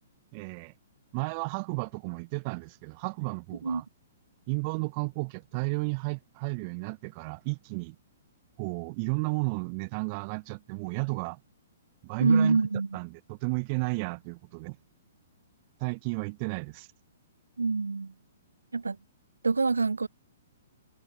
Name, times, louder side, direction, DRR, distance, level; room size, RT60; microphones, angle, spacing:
voice 1, 0.3-0.7 1.1-3.8 4.5-8.0 8.6-11.4 12.0-12.6 12.9-14.8 15.8-16.9, right 31 dB, 35° right, 1.2 m, -33 dB
voice 2, 12.2-13.0 17.6-18.1 18.7-19.0 19.4-20.1, right 4 dB, 75° right, 1.6 m, -25 dB
figure-of-eight pair, 115°, 0 cm